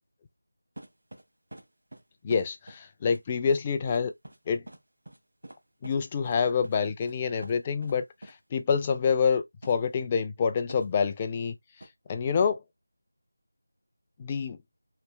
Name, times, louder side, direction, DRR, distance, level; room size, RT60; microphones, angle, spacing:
sound 1, 0.8-1.2 1.5-1.7 1.9-2.0 2.3-2.8 3.1-3.2 3.5-3.6 3.9-4.0 4.2-4.4 4.7-4.8 5.1-5.2 5.4-5.6 5.8-6.0 6.2-6.4 6.6-6.8 7.0-7.2 7.4-7.6 7.8-8.0 8.2-8.3 9.6-9.8 10.7-10.9 11.8-11.9, right 1 dB, 65° right, 1.1 m, -45 dB
voice 1, 2.2-4.1 4.5-4.6 5.8-8.0 8.5-11.5 12.1-12.6 14.2-14.6, left 6 dB, 20° left, 0.4 m, -27 dB
3.3 x 2.6 x 3.0 m
figure-of-eight pair, 165°, 0 cm